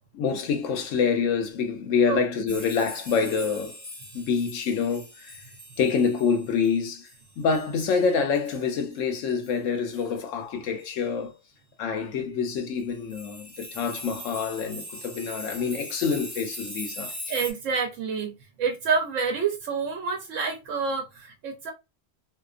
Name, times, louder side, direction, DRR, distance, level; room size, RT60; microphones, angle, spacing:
voice 1, 0.1-3.8 4.1-5.4 5.8-7.1 7.4-11.4 11.8-17.1, left 5 dB, 85° left, 1.0 m, -26 dB
voice 2, 2.1-2.6 17.3-18.3 18.6-21.7, right 5 dB, 85° right, 1.0 m, -28 dB
sound 1, 2.5-8.7 8.9-9.0 9.3-9.5 9.9-10.1 10.8-10.9 12.8-17.5, equal, 15° right, 0.8 m, -41 dB
2.8 x 2.2 x 2.3 m
omnidirectional pair, 1.3 m